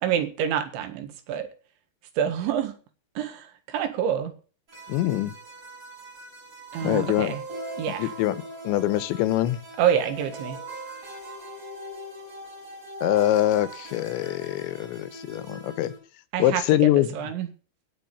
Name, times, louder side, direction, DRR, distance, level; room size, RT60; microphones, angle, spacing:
voice 1, 0.0-1.5 2.2-2.7 3.2-4.3 6.7-7.4 7.8-8.1 9.8-10.6 16.3-17.5, right 9 dB, 85° right, 9 dB, 4.1 m, -27 dB
sound 1, 4.7-16.0, right 1 dB, 30° right, 8.2 m, -41 dB
voice 2, 4.9-5.3 6.8-7.3 8.0-8.4 8.6-9.6 13.0-15.9 16.4-17.1, left 14 dB, 85° left, 15 dB, 3.2 m, -23 dB
17.5 x 7.2 x 6.9 m, 0.39 s
omnidirectional pair, 5.2 m